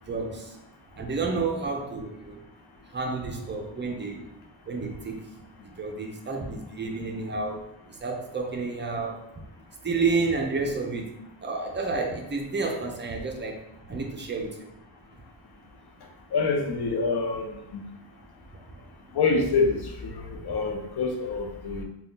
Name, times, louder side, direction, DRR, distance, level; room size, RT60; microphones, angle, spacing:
voice 1, 0.1-0.6 1.0-2.4 2.9-4.3 4.7-5.3 5.6-9.2 9.8-13.6 13.9-14.7 18.5-18.9 20.4-20.6, right 4 dB, 25° right, 2 dB, 0.4 m, -30 dB
voice 2, 16.3-17.5 17.7-17.8 19.1-21.8, left 4 dB, 60° left, 2 dB, 0.6 m, -26 dB
2.6 x 2.3 x 3.5 m, 0.83 s
wide cardioid pair, 135°, 43 cm